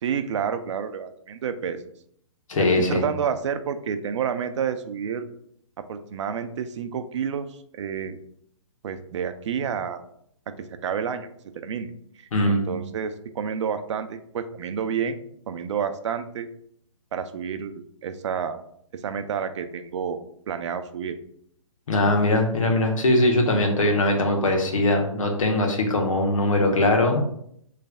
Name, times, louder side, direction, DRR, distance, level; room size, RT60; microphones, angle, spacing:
voice 1, 0.0-1.8 2.6-5.3 5.9-7.5 7.8-8.2 8.8-10.0 10.6-11.3 11.6-11.9 12.2-15.2 15.5-16.5 17.1-18.6 19.0-20.2 20.5-21.1, right 7 dB, 55° right, 9 dB, 0.5 m, -29 dB
voice 2, 2.5-3.0 12.3-12.7 21.9-27.2, left 1 dB, 70° left, 2 dB, 1.3 m, -21 dB
6.4 x 3.2 x 2.3 m, 0.69 s
hypercardioid pair, 145°, 18 cm